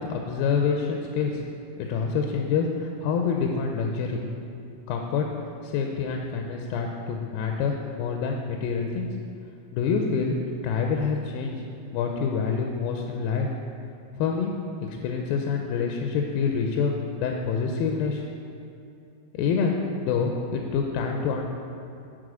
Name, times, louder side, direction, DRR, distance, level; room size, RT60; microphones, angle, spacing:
voice 1, 0.0-1.4 1.8-4.2 4.9-5.3 5.6-9.1 9.7-10.4 10.6-11.6 11.9-13.5 14.2-14.5 14.8-18.2 19.4-21.5, left 5 dB, 85° left, 2 dB, 2.4 m, -27 dB
9.9 x 4.0 x 6.1 m, 2.7 s
omnidirectional pair, 4.1 m